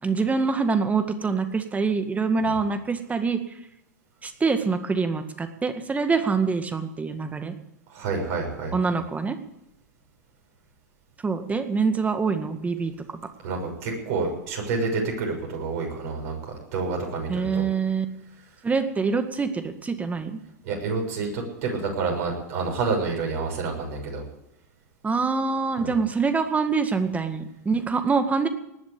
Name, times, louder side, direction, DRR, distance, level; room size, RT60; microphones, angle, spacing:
voice 1, 0.0-3.4 4.2-7.5 8.7-9.4 11.2-13.2 17.3-18.1 18.6-20.4 25.0-28.5, right 4 dB, 15° right, 8 dB, 1.9 m, -25 dB
voice 2, 7.9-8.7 13.4-17.6 20.6-24.2 25.8-25.9, right 4 dB, 55° right, 1 dB, 6.7 m, -28 dB
19.5 x 7.2 x 9.9 m, 0.85 s
hypercardioid pair, 95°, 9 cm